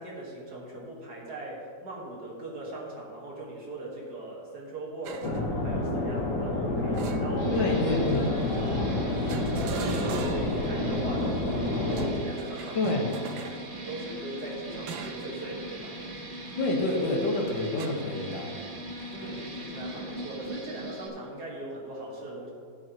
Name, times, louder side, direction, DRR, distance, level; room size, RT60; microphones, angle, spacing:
voice 1, 0.0-7.7 9.7-12.9 13.3-16.0 19.1-22.5, right 2 dB, 55° right, -3 dB, 2.4 m, -40 dB
sound 1, 5.0-5.4 6.9-7.7 9.3-10.7 11.9-13.6 14.9-15.3 15.7-15.9 17.8-17.9, right 6 dB, 85° right, 1.5 m, -39 dB
sound 2, 5.2-12.1, left 2 dB, 65° left, 2.2 m, -29 dB
sound 3, 7.4-21.1, equal, 30° right, 1.1 m, -39 dB
voice 2, 7.5-8.3 12.7-13.0 16.6-18.6, left 2 dB, 85° left, 0 dB, 2.2 m, -27 dB
14.0 x 8.2 x 3.1 m, 2.3 s
omnidirectional pair, 2.0 m